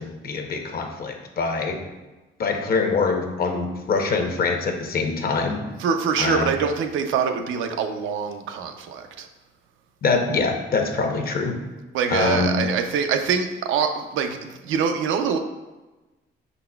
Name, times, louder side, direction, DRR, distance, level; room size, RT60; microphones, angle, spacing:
voice 1, 0.0-1.8 2.4-5.6 6.2-6.5 10.0-11.6 12.1-12.6, left 4 dB, 50° left, 4 dB, 0.7 m, -24 dB
voice 2, 5.8-9.3 11.9-15.4, right 6 dB, 85° right, 6 dB, 0.4 m, -24 dB
5.3 x 4.0 x 2.2 m, 1.1 s
cardioid pair, 90°, 20 cm